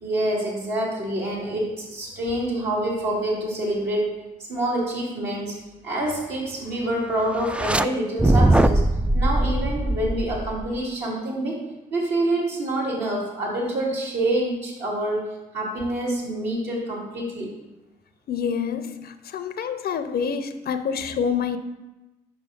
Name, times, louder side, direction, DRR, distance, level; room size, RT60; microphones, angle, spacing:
voice 1, 0.0-4.1 4.5-5.5 5.8-8.8 9.1-11.6 11.9-15.3 15.5-17.5, right 1 dB, 70° right, -5 dB, 2.6 m, -26 dB
sound 1, 7.4-7.8 8.2-10.8, right 1 dB, 5° right, 0.3 m, -20 dB
voice 2, 18.3-21.6, left 6 dB, 55° left, 10 dB, 0.6 m, -27 dB
5.5 x 5.0 x 5.1 m, 1.0 s
hypercardioid pair, 50°, 19 cm